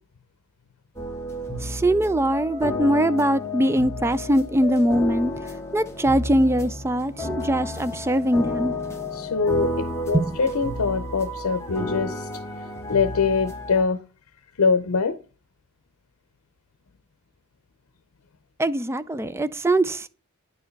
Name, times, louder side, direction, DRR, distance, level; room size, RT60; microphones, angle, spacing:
sound 1, 1.0-13.8, left 1 dB, 15° left, 1.3 m, -31 dB
voice 1, 1.6-5.3 5.7-8.7 10.1-10.3 18.6-20.1, right 1 dB, 10° right, 0.4 m, -22 dB
voice 2, 9.1-12.3 12.6-14.0 14.6-15.2, left 5 dB, 90° left, 0.6 m, -24 dB
9.6 x 4.8 x 3.2 m
head